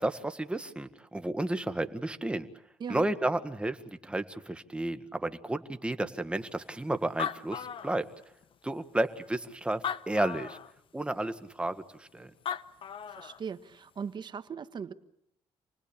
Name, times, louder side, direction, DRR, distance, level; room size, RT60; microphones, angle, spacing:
voice 1, 0.0-2.5 2.9-8.0 8.6-10.6 10.9-12.3, right 1 dB, 10° right, 1.6 m, -32 dB
Animal, 6.8-6.9 7.0-8.4 9.1-9.2 9.7-10.7 12.2-12.3 12.5-13.4, left 8 dB, 55° left, 1.0 m, -36 dB
voice 2, 13.1-14.9, right 6 dB, 45° right, 1.3 m, -39 dB
28.5 x 19.5 x 8.7 m
cardioid pair, 100°, 11 cm